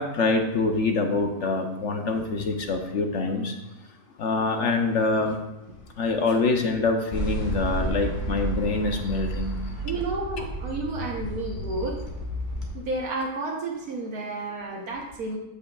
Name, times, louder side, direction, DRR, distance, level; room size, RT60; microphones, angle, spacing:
voice 1, 0.0-3.5 4.2-5.4 6.0-9.5, left 3 dB, 60° left, 4 dB, 0.9 m, -25 dB
sound 1, 7.1-12.7, right 1 dB, 30° left, 1.6 m, -31 dB
voice 2, 9.8-12.0 12.7-15.4, right 2 dB, 70° right, -1 dB, 1.4 m, -31 dB
14.5 x 5.6 x 2.3 m, 0.95 s
omnidirectional pair, 1.7 m